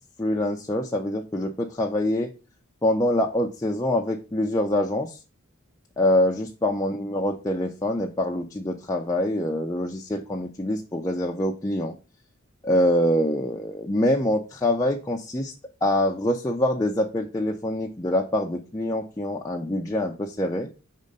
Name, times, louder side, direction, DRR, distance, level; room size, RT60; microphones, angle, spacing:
voice 1, 0.2-2.3 2.8-5.2 6.0-11.9 12.6-15.5 15.8-20.7, left 1 dB, 15° left, 0 dB, 0.5 m, -25 dB
5.3 x 3.7 x 5.2 m, 0.33 s
head